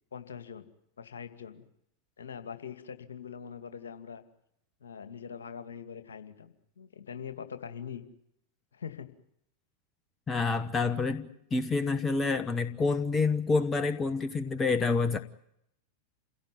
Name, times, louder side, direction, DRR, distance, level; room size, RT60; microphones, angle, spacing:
voice 1, 0.1-0.6 1.0-1.6 2.2-4.2 4.8-8.1 8.7-9.1 11.3-11.4, left 7 dB, 65° left, 9 dB, 2.4 m, -43 dB
voice 2, 10.3-15.2, left 4 dB, 20° left, 12 dB, 1.3 m, -28 dB
28.0 x 17.5 x 9.5 m, 0.77 s
figure-of-eight pair, 90°, 0 cm